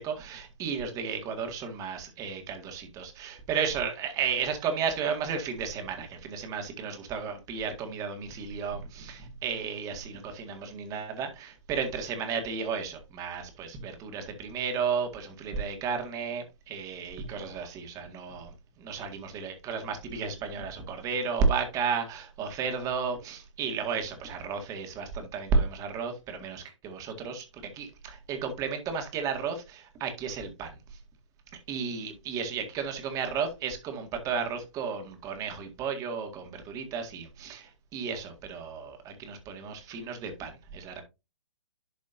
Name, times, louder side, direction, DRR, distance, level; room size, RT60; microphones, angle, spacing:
voice 1, 0.0-18.5 18.8-30.7 31.7-41.0, right 5 dB, 20° right, 1.9 m, -33 dB
11.5 x 5.1 x 2.6 m
figure-of-eight pair, 135°, 16 cm